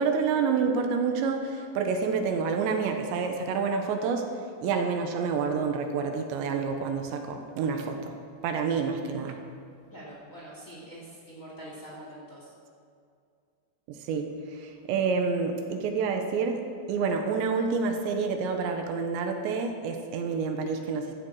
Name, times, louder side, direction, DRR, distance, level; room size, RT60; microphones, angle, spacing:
voice 1, 0.0-4.3 4.6-8.1 8.4-9.4 13.9-21.1, right 5 dB, 80° right, 4 dB, 3.4 m, -28 dB
voice 2, 9.9-12.5, right 1 dB, 25° left, -4 dB, 2.3 m, -44 dB
16.5 x 13.0 x 4.8 m, 2.3 s
omnidirectional pair, 5.1 m